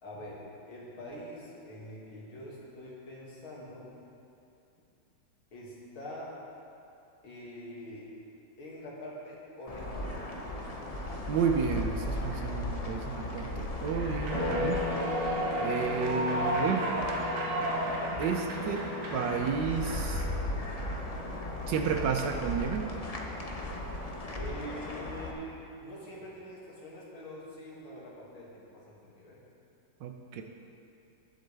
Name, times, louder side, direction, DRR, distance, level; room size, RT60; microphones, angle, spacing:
voice 1, 0.0-3.9 5.5-6.3 7.2-8.1 8.6-10.2 24.3-29.4, equal, 85° left, -6 dB, 3.1 m, -45 dB
sound 1, 9.7-25.3, left 2 dB, 60° left, 0.3 m, -35 dB
voice 2, 11.3-14.8 15.6-16.9 18.2-20.2 21.7-22.9 30.0-30.4, right 6 dB, 70° right, 4 dB, 1.2 m, -31 dB
Human voice / Clapping / Cheering, 13.9-19.9, right 1 dB, 90° right, 2.0 m, -34 dB
19.5 x 7.9 x 3.4 m, 2.7 s
omnidirectional pair, 2.2 m